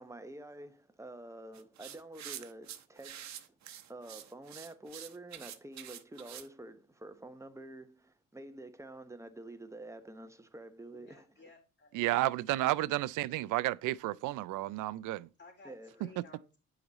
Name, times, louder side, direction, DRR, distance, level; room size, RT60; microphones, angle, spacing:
voice 1, 0.0-3.3 3.9-11.5 15.6-16.0, right 1 dB, 10° right, 1.0 m, -48 dB
sound 1, 1.5-6.5, right 11 dB, 65° right, 0.9 m, -47 dB
voice 2, 10.9-12.0 15.4-16.6, left 3 dB, 40° left, 3.6 m, -57 dB
voice 3, 11.9-15.3, right 17 dB, 85° right, 0.5 m, -32 dB
7.9 x 5.0 x 4.0 m
cardioid pair, 90°, 30 cm